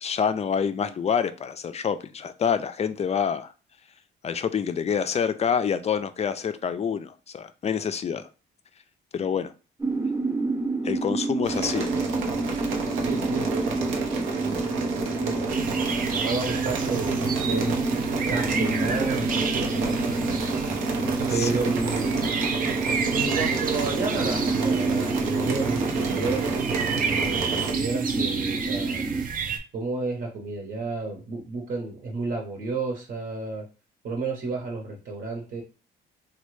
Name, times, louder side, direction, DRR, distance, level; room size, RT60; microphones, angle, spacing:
voice 1, 0.0-3.5 4.2-8.3 9.1-9.5 10.8-11.9 21.3-21.5, left 7 dB, 35° left, 11 dB, 0.4 m, -27 dB
sound 1, 9.8-29.2, right 3 dB, 15° right, 0.7 m, -28 dB
sound 2, 11.4-27.7, right 4 dB, 85° right, 0.7 m, -32 dB
voice 2, 13.0-15.6 16.2-17.8 18.2-20.2 21.3-22.3 23.1-26.6 27.1-29.1 29.7-33.7 34.0-35.6, right 3 dB, 60° right, 0 dB, 1.0 m, -32 dB
sound 3, 15.5-29.6, right 6 dB, 45° right, 0.6 m, -31 dB
3.1 x 2.3 x 3.1 m, 0.33 s
cardioid pair, 90°, 20 cm